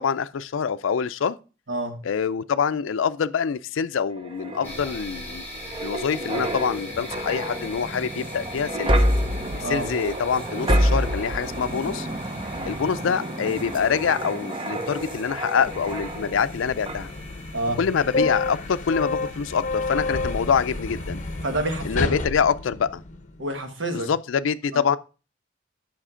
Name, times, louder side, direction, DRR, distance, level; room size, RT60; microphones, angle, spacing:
voice 1, 0.0-1.4 2.0-5.4 5.8-8.9 9.6-12.1 12.6-17.1 17.8-21.2 21.8-23.0 23.9-25.0, left 6 dB, 80° left, 0.4 m, -25 dB
voice 2, 1.7-2.0 9.6-9.9 12.5-12.7 17.5-17.8 21.4-22.2 23.4-24.1 24.7-24.8, right 1 dB, 70° right, 1.5 m, -28 dB
sound 1, 4.2-16.5 16.9-17.1, equal, 25° right, 0.9 m, -28 dB
sound 2, 4.6-21.9, left 2 dB, 10° left, 3.4 m, -43 dB
sound 3, 15.6-23.4, left 3 dB, 40° left, 0.8 m, -30 dB
7.4 x 5.9 x 4.9 m
head